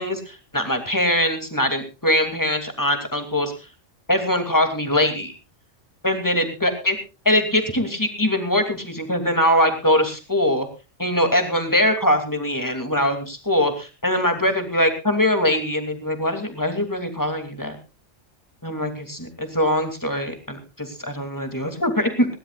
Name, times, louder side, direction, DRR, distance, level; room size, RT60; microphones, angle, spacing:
voice 1, 0.0-3.5 4.1-5.3 6.0-7.0 7.2-10.7 11.0-17.8 18.6-22.3, left 1 dB, 15° left, 6 dB, 2.7 m, -22 dB
20.0 x 17.5 x 2.4 m, 0.29 s
omnidirectional pair, 1.3 m